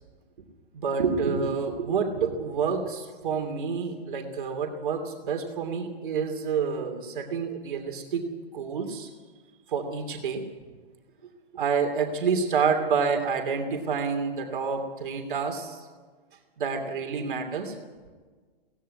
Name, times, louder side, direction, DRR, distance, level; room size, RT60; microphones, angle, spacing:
voice 1, 0.7-8.3 8.5-9.1 9.7-10.4 11.5-15.9 16.6-17.7, right 5 dB, 55° right, 4 dB, 2.9 m, -28 dB
18.0 x 16.0 x 9.6 m, 1.4 s
hypercardioid pair, 165°, 30 cm